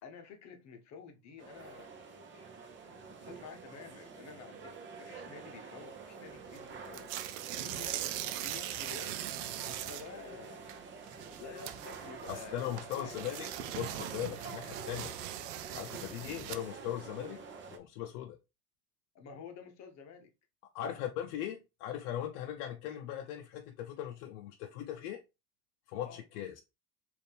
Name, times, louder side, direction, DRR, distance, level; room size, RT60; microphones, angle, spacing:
voice 1, 0.0-7.1 7.6-9.4 9.6-10.9 11.4-13.4 19.1-20.3 20.8-20.9 26.0-26.2, left 5 dB, 35° left, 0.9 m, -51 dB
sound 1, 1.4-17.8, right 5 dB, 25° right, 0.7 m, -48 dB
sound 2, 6.5-6.6 6.9-10.2 10.4-10.8 11.1-16.8, right 12 dB, 70° right, 0.6 m, -41 dB
voice 2, 12.3-13.5 13.7-15.1 15.7-17.4 17.7-18.4 20.7-25.2 25.9-26.6, left 11 dB, 65° left, 0.7 m, -39 dB
4.2 x 2.7 x 3.4 m
supercardioid pair, 120°, 48 cm